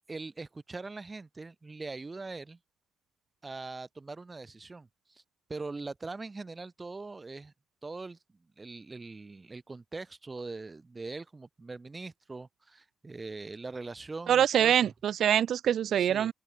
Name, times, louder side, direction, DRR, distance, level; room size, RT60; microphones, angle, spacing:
voice 1, 0.1-2.6 3.4-5.2 5.5-7.5 7.8-8.2 8.6-14.7 16.0-16.3, right 3 dB, 25° right, 1.5 m, -42 dB
voice 2, 14.3-16.3, right 10 dB, 65° right, 0.8 m, -24 dB
open air
cardioid pair, 90°, 0 cm